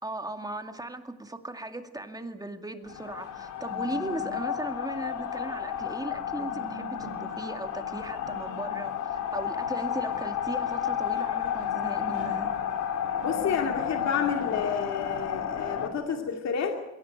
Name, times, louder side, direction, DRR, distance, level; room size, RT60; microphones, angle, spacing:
voice 1, 0.0-12.6, right 2 dB, 10° right, 6 dB, 2.3 m, -37 dB
sound 1, 2.9-15.9, left 9 dB, 80° left, 3.2 m, -32 dB
voice 2, 13.2-16.8, left 6 dB, 60° left, 3 dB, 2.5 m, -30 dB
22.0 x 17.0 x 8.9 m, 1.1 s
cardioid pair, 90°, 30 cm